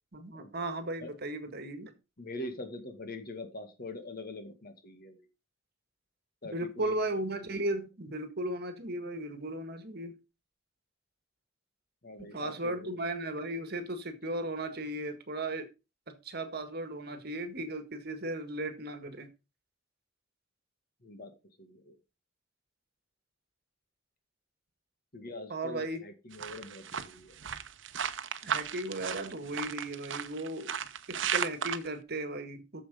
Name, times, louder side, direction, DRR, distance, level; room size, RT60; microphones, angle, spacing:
voice 1, 0.1-1.9 6.5-10.2 12.2-15.7 16.1-19.3 25.5-26.0 28.4-30.7 31.1-32.8, right 1 dB, 55° right, 9 dB, 1.7 m, -36 dB
voice 2, 2.2-5.3 6.4-7.6 12.0-13.0 21.0-21.3 21.6-21.9 25.1-27.4, left 2 dB, 50° left, 7 dB, 2.0 m, -44 dB
sound 1, 26.3-31.9, right 8 dB, 70° right, 0.8 m, -35 dB
8.7 x 7.0 x 5.2 m, 0.29 s
head